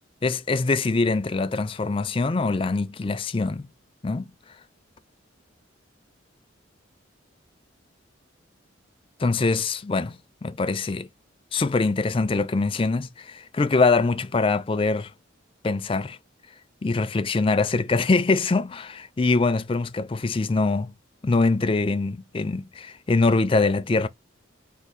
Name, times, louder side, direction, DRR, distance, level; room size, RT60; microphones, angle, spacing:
voice 1, 0.2-3.7 4.0-4.3 9.2-10.1 10.4-11.1 11.5-15.1 15.6-16.2 16.8-20.9 21.2-24.1, left 3 dB, 25° left, 0.4 m, -23 dB
4.7 x 2.4 x 3.9 m
head